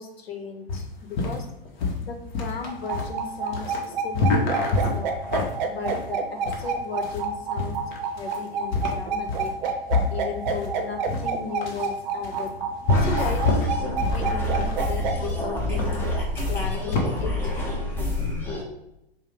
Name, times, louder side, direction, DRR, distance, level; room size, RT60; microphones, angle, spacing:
voice 1, 0.0-1.5 2.0-5.1 5.7-7.8 8.2-9.5 10.1-12.5 13.0-16.0 16.5-17.5, left 5 dB, 85° left, 4 dB, 0.8 m, -35 dB
sound 1, 0.7-17.0, left 3 dB, 50° left, 0.9 m, -28 dB
sound 2, 2.7-15.1, right 6 dB, 50° right, 0.6 m, -28 dB
sound 3, 12.9-18.6, left 1 dB, 5° left, 0.5 m, -27 dB
4.6 x 2.0 x 3.2 m, 0.87 s
hypercardioid pair, 120°, 30 cm